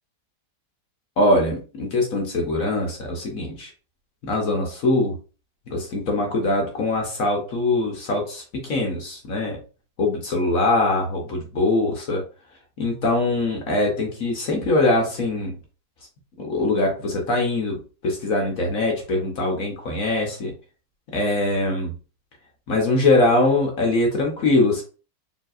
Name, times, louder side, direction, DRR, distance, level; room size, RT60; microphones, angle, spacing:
voice 1, 1.2-3.7 4.2-5.2 5.7-9.6 10.0-12.2 12.8-15.6 16.4-20.5 21.1-21.9 22.7-24.8, left 2 dB, 55° left, 0 dB, 1.2 m, -22 dB
4.5 x 3.3 x 2.4 m, 0.35 s
omnidirectional pair, 1.9 m